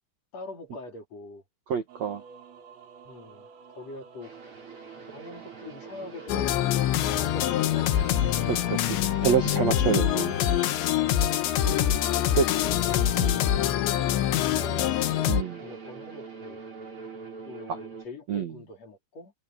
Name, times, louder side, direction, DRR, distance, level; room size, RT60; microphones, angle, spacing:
voice 1, 0.3-1.4 3.0-4.3 5.1-6.8 7.1-7.9 12.6-13.2 14.0-15.3 15.6-16.6 17.4-19.3, left 2 dB, 35° left, 3.8 m, -43 dB
voice 2, 1.7-2.2 8.5-8.8 9.2-10.4 11.6-11.8 12.4-12.5 13.2-13.4 15.3-15.6 17.7-17.8 18.3-18.5, right 7 dB, 60° right, 1.8 m, -27 dB
sound 1, 1.9-13.2, right 5 dB, 80° right, 6.2 m, -50 dB
sound 2, 4.2-18.1, right 4 dB, 25° right, 4.8 m, -44 dB
sound 3, 6.3-15.4, left 12 dB, 70° left, 3.3 m, -25 dB
omnidirectional pair, 5.8 m